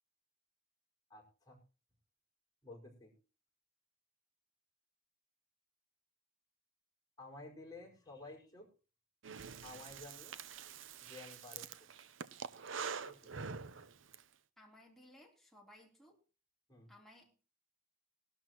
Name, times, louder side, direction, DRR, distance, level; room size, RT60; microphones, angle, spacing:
voice 1, 1.1-1.6 2.6-3.1 7.2-8.7 9.6-10.3 11.0-11.9 13.0-13.3 16.7-16.9, left 2 dB, 20° left, -1 dB, 5.1 m, -53 dB
Breathing, 9.2-14.2, right 6 dB, 70° right, 0.7 m, -46 dB
voice 2, 14.6-16.2 16.9-17.4, left 1 dB, ahead, -1 dB, 3.4 m, -60 dB
19.5 x 12.0 x 3.0 m, 0.34 s
head